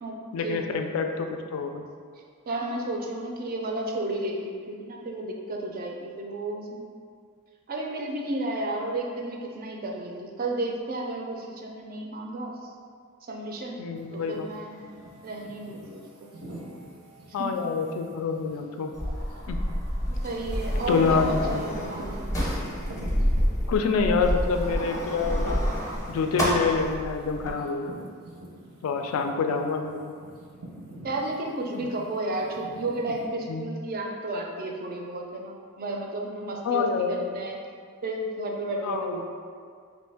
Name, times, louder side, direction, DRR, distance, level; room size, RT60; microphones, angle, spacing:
voice 1, 0.3-1.8 13.8-14.5 17.3-18.9 19.5-19.6 20.9-21.6 23.7-25.6 26.1-28.0 28.8-30.1 31.7-31.9 33.5-33.7 36.6-37.2 38.8-39.2, left 5 dB, 65° left, 4 dB, 0.3 m, -27 dB
voice 2, 2.5-6.8 7.7-12.6 13.2-14.8 15.2-16.3 17.4-17.5 20.2-22.2 31.0-37.6 38.0-39.2, right 2 dB, 45° right, 0 dB, 0.4 m, -32 dB
sound 1, 13.9-29.1 29.4-33.3, right 1 dB, 75° right, 0.7 m, -46 dB
Sliding door, 18.9-27.5, equal, 15° left, 0.6 m, -28 dB
3.1 x 2.6 x 3.4 m, 2.1 s
head